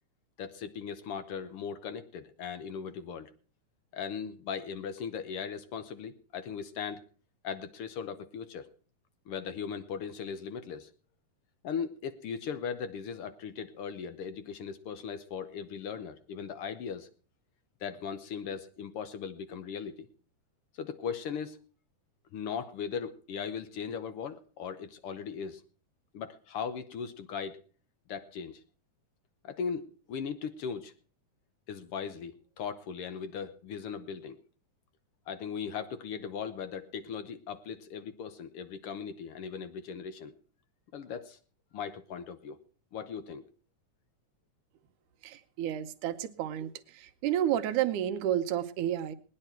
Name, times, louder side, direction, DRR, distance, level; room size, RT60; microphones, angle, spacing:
voice 1, 0.4-3.3 3.9-7.0 7.4-8.7 9.3-10.9 11.6-17.1 17.8-20.1 20.7-21.6 22.3-25.6 26.1-27.6 28.1-28.6 29.4-30.9 31.7-34.4 35.3-40.3 40.9-41.4 41.7-42.6 42.9-43.5, left 6 dB, 70° left, 11 dB, 1.4 m, -38 dB
voice 2, 45.2-49.2, right 11 dB, 80° right, 9 dB, 2.4 m, -31 dB
20.0 x 10.0 x 4.4 m, 0.40 s
omnidirectional pair, 3.5 m